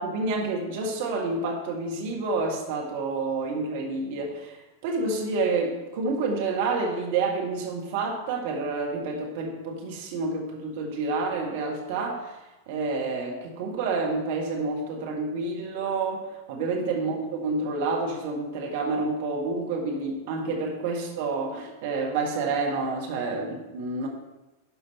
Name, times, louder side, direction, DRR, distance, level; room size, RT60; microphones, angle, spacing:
voice 1, 0.0-4.6 4.8-12.4 12.7-24.1, right 3 dB, 50° right, -1 dB, 1.6 m, -29 dB
12.0 x 5.1 x 4.3 m, 1.0 s
figure-of-eight pair, 90°, 0 cm